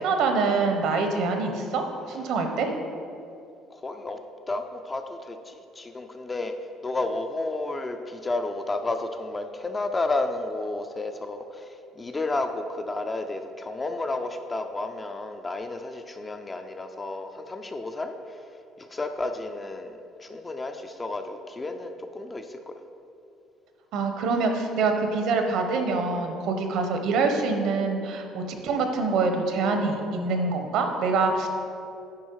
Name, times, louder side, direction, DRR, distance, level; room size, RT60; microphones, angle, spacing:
voice 1, 0.0-2.7 23.9-31.5, right 4 dB, 65° right, 5 dB, 1.0 m, -25 dB
voice 2, 3.7-4.2 4.5-6.5 6.8-18.5 18.8-22.7, left 2 dB, 15° left, 6 dB, 0.4 m, -32 dB
9.7 x 5.5 x 4.7 m, 2.6 s
cardioid pair, 160°, 0 cm